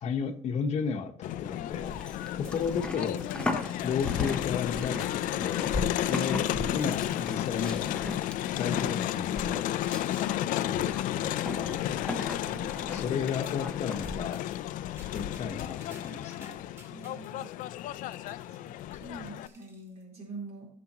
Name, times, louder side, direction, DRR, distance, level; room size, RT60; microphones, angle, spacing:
voice 1, 0.0-2.0 2.4-3.2 3.8-5.7 6.0-7.9 8.5-9.9 10.4-12.0 12.9-14.4 15.1-16.6, left 6 dB, 55° left, 5 dB, 1.2 m, -33 dB
Crowd, 1.2-19.5, left 13 dB, 75° left, 0.5 m, -32 dB
Livestock farm animals working animals, 1.7-14.2, left 2 dB, 5° left, 1.1 m, -38 dB
voice 2, 2.3-2.8 12.5-12.7 16.9-17.5 18.6-20.7, right 2 dB, 50° right, -1 dB, 4.3 m, -45 dB
sound 1, 2.4-2.9 3.2-4.1 4.4-4.6 5.0-5.2 5.5-5.7 6.0-8.3 8.9-9.3 9.9-10.0 10.4-10.5 10.8-10.9 11.3-11.8 13.4-13.6 14.0-20.0, right 1 dB, 20° right, 2.4 m, -58 dB
17.5 x 7.2 x 3.0 m, 0.67 s
cardioid pair, 130°, 14 cm